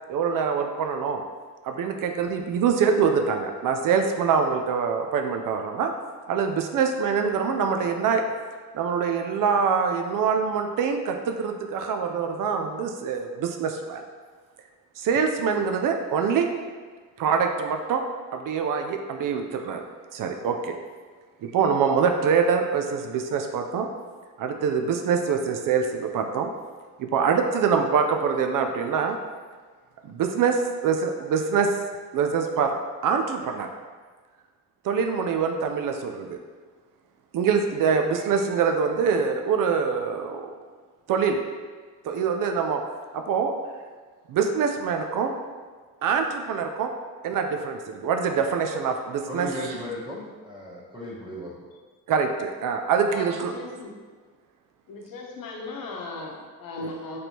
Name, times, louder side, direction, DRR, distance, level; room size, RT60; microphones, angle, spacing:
voice 1, 0.1-1.2 1.7-5.9 6.3-8.2 8.7-14.0 15.0-16.5 17.2-18.0 18.3-19.8 20.1-20.8 21.4-23.9 24.4-26.5 27.0-29.2 30.1-31.7 32.1-32.7 33.0-33.7 34.9-36.4 37.3-40.5 41.1-41.4 42.1-42.8 43.1-43.5 44.3-45.3 46.0-46.9 47.2-49.5 52.1-53.5, right 6 dB, 65° right, 5 dB, 0.5 m, -24 dB
voice 2, 49.3-51.6, left 1 dB, 15° right, -6 dB, 1.2 m, -36 dB
voice 3, 53.1-53.9 54.9-57.2, left 3 dB, 70° left, -1 dB, 0.9 m, -37 dB
4.2 x 3.3 x 2.8 m, 1.5 s
cardioid pair, 100°, 34 cm